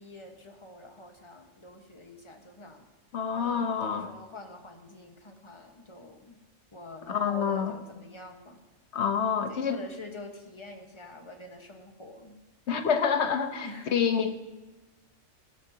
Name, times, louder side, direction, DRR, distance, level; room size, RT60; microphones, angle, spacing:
voice 1, 0.0-2.8 3.3-6.4 6.7-8.6 9.5-12.4 13.6-14.0, left 2 dB, 25° left, 3 dB, 1.3 m, -46 dB
voice 2, 3.1-4.1 7.1-7.7 8.9-9.8 12.7-14.3, left 7 dB, 65° left, 7 dB, 1.3 m, -27 dB
16.0 x 13.0 x 2.8 m, 1.1 s
omnidirectional pair, 1.3 m